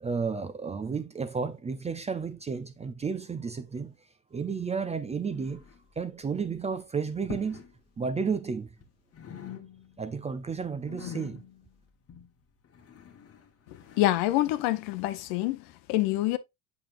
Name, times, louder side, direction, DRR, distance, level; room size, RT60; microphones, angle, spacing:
voice 1, 0.0-3.9 4.3-5.6 6.0-7.6 8.0-8.7 10.0-11.4, right 5 dB, 15° right, 0.5 m, -32 dB
sound 1, 5.3-6.0 6.3-6.6 7.2-7.7 8.0-8.9 9.1-10.1 10.4-14.1, left 8 dB, 35° left, 1.2 m, -45 dB
voice 2, 14.0-16.4, left 16 dB, 65° left, 0.8 m, -26 dB
7.0 x 5.9 x 2.5 m
supercardioid pair, 105°, 42 cm